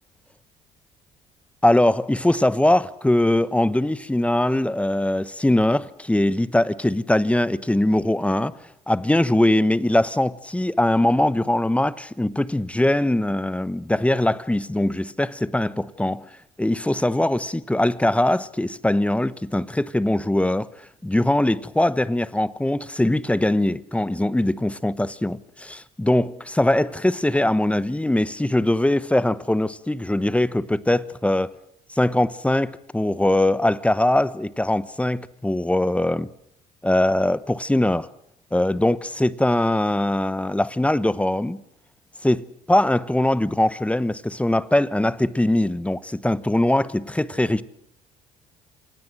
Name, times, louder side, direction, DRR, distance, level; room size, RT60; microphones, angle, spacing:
voice 1, 1.6-8.5 8.9-16.3 16.6-20.7 21.0-31.5 32.0-36.3 36.8-38.1 38.5-41.6 42.2-47.6, left 1 dB, 10° left, 1.0 m, -21 dB
27.0 x 18.0 x 7.7 m
supercardioid pair, 80°, 16 cm